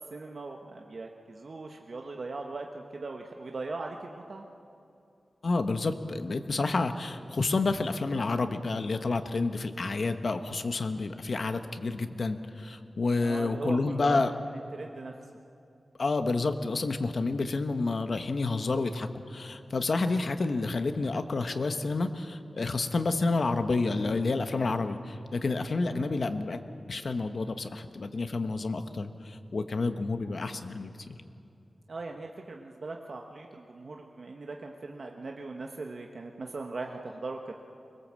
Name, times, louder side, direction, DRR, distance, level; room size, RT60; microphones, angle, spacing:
voice 1, 0.1-4.5 13.2-15.1 25.8-26.2 31.9-37.5, right 3 dB, 55° right, 2 dB, 1.2 m, -39 dB
voice 2, 5.4-14.3 16.0-26.6 26.9-31.2, left 3 dB, 55° left, 8 dB, 1.2 m, -29 dB
24.0 x 21.0 x 7.5 m, 2.6 s
wide cardioid pair, 120°, 0 cm